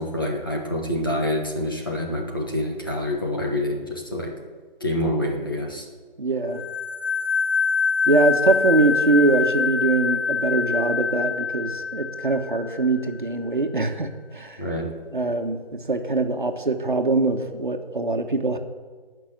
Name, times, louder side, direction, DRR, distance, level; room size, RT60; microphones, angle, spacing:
voice 1, 0.0-4.3 4.8-5.8 14.6-14.9, left 1 dB, 20° left, -1 dB, 1.3 m, -26 dB
voice 2, 6.2-6.6 8.1-14.6 15.1-18.6, right 3 dB, 55° right, 5 dB, 1.4 m, -23 dB
sound 1, 6.5-13.0, left 5 dB, 85° left, 1.7 m, -25 dB
17.5 x 6.0 x 8.1 m, 1.5 s
figure-of-eight pair, 170°, 30 cm